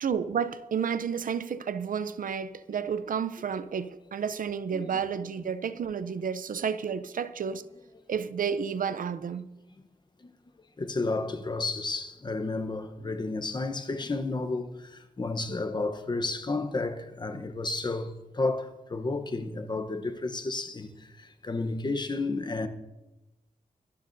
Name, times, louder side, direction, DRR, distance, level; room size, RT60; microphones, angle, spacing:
voice 1, 0.0-7.6 8.1-9.5, right 7 dB, 75° right, 0.6 m, -31 dB
voice 2, 4.7-5.0 10.8-14.7 15.2-20.9 21.4-22.7, left 3 dB, 30° left, 0.9 m, -31 dB
24.5 x 12.0 x 2.7 m
wide cardioid pair, 170°, 14 cm